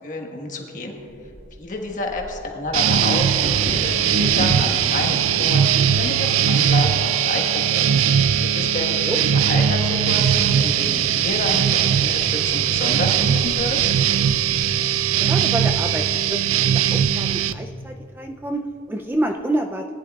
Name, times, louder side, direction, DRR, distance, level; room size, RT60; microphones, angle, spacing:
voice 1, 0.0-0.9 1.6-3.3 3.6-8.0 8.5-14.0, left 2 dB, 40° left, 2 dB, 1.3 m, -29 dB
Bird vocalization bird call bird song / Wind / Thunder, 1.0-16.9 17.5-17.6 17.9-18.3 18.8-19.3, equal, 65° right, 2.4 m, -38 dB
sound 1, 2.7-17.5, right 8 dB, 90° right, 0.4 m, -20 dB
voice 2, 15.2-16.4 16.7-19.8, right 1 dB, 10° right, 4 dB, 0.3 m, -28 dB
19.5 x 10.5 x 2.3 m, 2.8 s
head